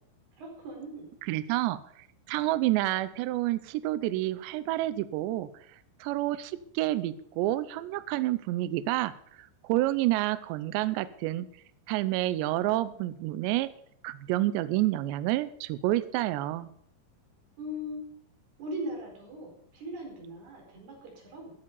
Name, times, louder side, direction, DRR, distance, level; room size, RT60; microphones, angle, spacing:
voice 1, 0.4-1.1 17.6-18.0 18.6-21.5, equal, 55° right, -1 dB, 6.5 m, -39 dB
voice 2, 1.3-1.8 2.3-5.5 6.0-9.1 9.4-11.5 11.9-13.7 14.0-16.7, right 16 dB, 85° right, 15 dB, 2.5 m, -29 dB
15.0 x 8.3 x 6.9 m, 0.66 s
omnidirectional pair, 5.7 m